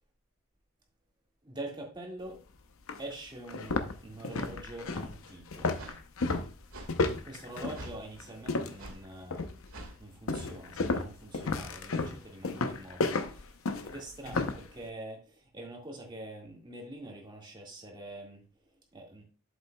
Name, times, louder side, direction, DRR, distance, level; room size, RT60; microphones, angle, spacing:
voice 1, 1.4-2.4 3.0-5.8 7.2-9.5 10.0-19.2, right 1 dB, 20° right, 0 dB, 1.9 m, -45 dB
sound 1, 2.3-2.4 2.9-3.0 3.4-8.9 9.3-9.7 10.3-14.7, left 3 dB, 70° left, 0.7 m, -32 dB
sound 2, 5.8-6.0 6.7-6.9 7.7-8.0 8.8-9.0 9.7-10.0, right 2 dB, 75° right, 1.9 m, -45 dB
8.0 x 7.5 x 2.3 m, 0.33 s
head